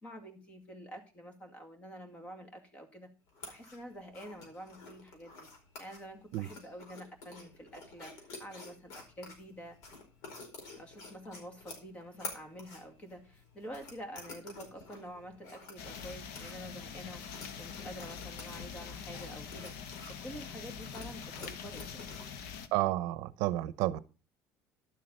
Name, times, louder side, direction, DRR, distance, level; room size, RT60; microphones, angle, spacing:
voice 1, 0.0-3.1 3.5-5.5 5.8-9.8 10.8-22.1, equal, 20° left, 2.2 m, -48 dB
sound 1, 3.3-22.3, left 3 dB, 65° left, 4.6 m, -51 dB
soft rain, 15.8-22.7, left 6 dB, 85° left, 1.3 m, -44 dB
voice 2, 22.7-24.0, right 16 dB, 70° right, 0.7 m, -31 dB
11.5 x 7.5 x 5.5 m
cardioid pair, 150°, 6 cm